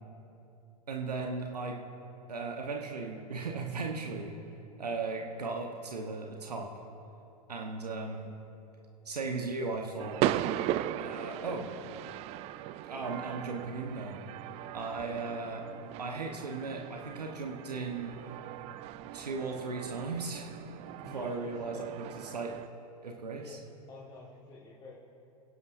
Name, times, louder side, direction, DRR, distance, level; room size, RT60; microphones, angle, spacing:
voice 1, 0.9-1.8 2.3-4.3 4.8-6.7 7.5-8.3 9.0-10.2 11.0-11.7 12.8-14.2 14.7-15.6 16.0-18.2 19.1-20.5 21.1-22.5 23.0-23.6, right 3 dB, 85° right, 1 dB, 1.2 m, -37 dB
sound 1, 10.0-22.7, right 13 dB, 35° right, 0.4 m, -38 dB
voice 2, 21.0-21.9 23.4-23.6 23.9-24.9, left 3 dB, 20° left, -5 dB, 1.7 m, -48 dB
26.0 x 11.0 x 2.6 m, 2.8 s
hypercardioid pair, 100°, 20 cm